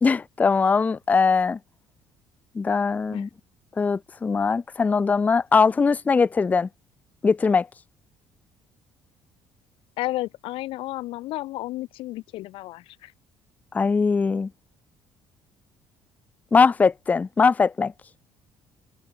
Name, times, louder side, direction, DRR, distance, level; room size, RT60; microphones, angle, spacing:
voice 1, 0.0-1.6 2.6-3.3 3.8-6.7 7.2-7.7 13.7-14.5 16.5-17.9, left 5 dB, 15° left, 0.4 m, -21 dB
voice 2, 10.0-13.1, left 17 dB, 75° left, 1.0 m, -32 dB
cardioid pair, 140°, 9 cm